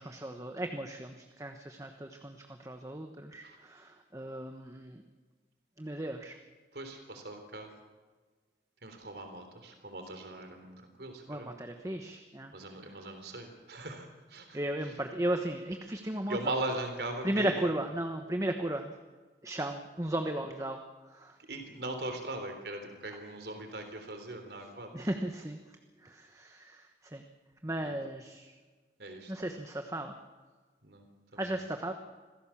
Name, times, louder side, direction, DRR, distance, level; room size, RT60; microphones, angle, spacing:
voice 1, 0.0-5.0 5.8-6.4 11.3-12.5 14.5-16.4 17.2-18.9 19.4-20.8 21.1-21.4 24.9-25.6 26.0-26.9 27.1-27.2 27.6-28.5 29.3-30.2 31.4-31.9, right 1 dB, 20° right, 5 dB, 1.1 m, -35 dB
voice 2, 6.7-7.7 8.8-11.5 12.5-14.6 16.3-17.7 21.5-24.9 27.8-27.9 29.0-29.3 30.8-31.0 31.3-31.6, right 2 dB, 70° right, 6 dB, 3.5 m, -39 dB
26.0 x 17.0 x 7.2 m, 1.4 s
head